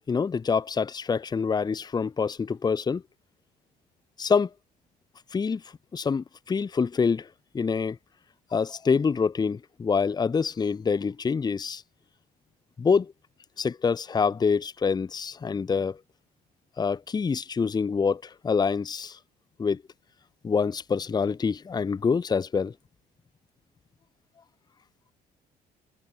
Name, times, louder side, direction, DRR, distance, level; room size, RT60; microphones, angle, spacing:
voice 1, 0.1-3.0 4.2-4.5 5.3-5.6 5.9-7.3 7.5-8.0 8.5-11.8 12.8-13.1 13.6-16.0 16.8-19.2 19.6-19.8 20.4-22.7, left 5 dB, 25° left, 0.9 m, -26 dB
cardioid pair, 110°, 17 cm